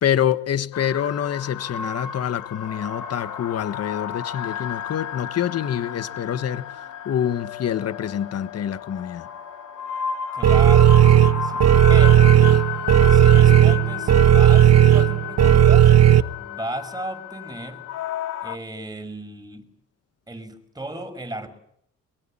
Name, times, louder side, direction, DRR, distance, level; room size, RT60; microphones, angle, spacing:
voice 1, 0.0-6.7 7.0-9.3, left 9 dB, 55° left, 1.4 m, -26 dB
sound 1, 0.7-18.6, left 9 dB, 90° left, 2.4 m, -33 dB
voice 2, 10.3-12.4 13.1-15.9 16.4-17.8 18.4-19.7 20.3-21.5, right 1 dB, 15° right, 6.0 m, -35 dB
sound 2, 10.4-16.2, right 11 dB, 55° right, 1.2 m, -14 dB
23.5 x 22.5 x 8.8 m
cardioid pair, 90°, 30 cm